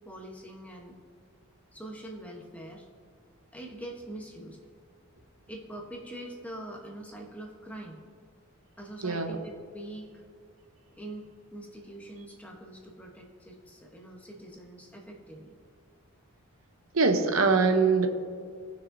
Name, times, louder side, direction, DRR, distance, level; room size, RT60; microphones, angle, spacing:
voice 1, 0.0-1.0 1.7-2.9 3.5-4.6 5.5-8.0 8.8-10.2 11.0-15.5, right 1 dB, 5° left, 0 dB, 1.0 m, -43 dB
voice 2, 9.0-9.4 16.9-18.1, right 4 dB, 80° right, 6 dB, 0.8 m, -23 dB
18.0 x 6.2 x 2.7 m, 2.1 s
head